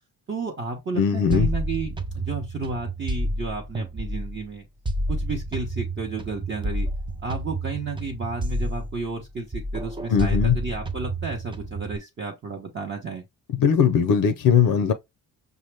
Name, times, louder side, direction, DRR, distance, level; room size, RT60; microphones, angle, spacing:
voice 1, 0.3-4.6 5.1-6.9 7.2-13.2, right 4 dB, 30° right, 0.7 m, -32 dB
voice 2, 0.9-1.5 10.1-10.6 13.5-14.9, left 7 dB, 60° left, 0.6 m, -19 dB
sound 1, 1.3-4.4 4.9-9.3 9.5-12.0, right 1 dB, 15° right, 0.3 m, -30 dB
5.8 x 2.1 x 3.3 m
cardioid pair, 145°, 38 cm